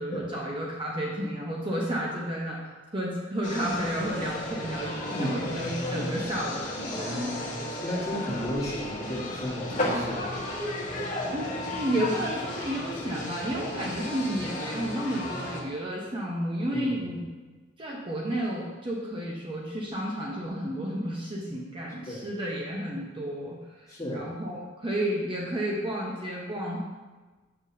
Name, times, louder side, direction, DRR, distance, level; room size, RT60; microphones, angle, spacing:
voice 1, 0.0-2.6 2.9-7.4 11.3-17.2 17.8-26.8, equal, 25° right, -3 dB, 0.8 m, -32 dB
sound 1, 3.4-15.6, left 1 dB, 45° left, 1.2 m, -34 dB
voice 2, 6.9-10.2 16.7-16.9 22.1-22.2 23.9-24.3, equal, 20° left, -6 dB, 1.7 m, -33 dB
7.9 x 5.7 x 2.8 m, 1.3 s
head